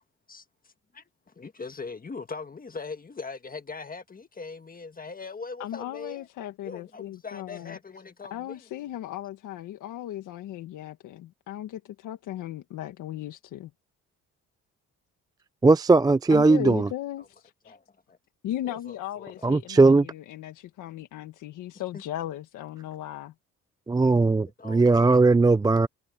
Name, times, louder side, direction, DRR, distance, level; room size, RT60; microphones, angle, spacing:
voice 1, 0.3-1.0 1.3-6.3 6.6-8.6 17.2-17.3 17.6-18.2 18.6-19.6 21.9-22.0 24.6-25.0, left 4 dB, 30° left, 1.5 m, -41 dB
voice 2, 5.6-7.8 8.3-13.7 16.3-17.8 18.4-23.3, left 13 dB, 85° left, 1.7 m, -37 dB
voice 3, 15.6-16.9 19.4-20.1 23.9-25.9, right 3 dB, 15° right, 0.4 m, -19 dB
cardioid pair, 90°, 30 cm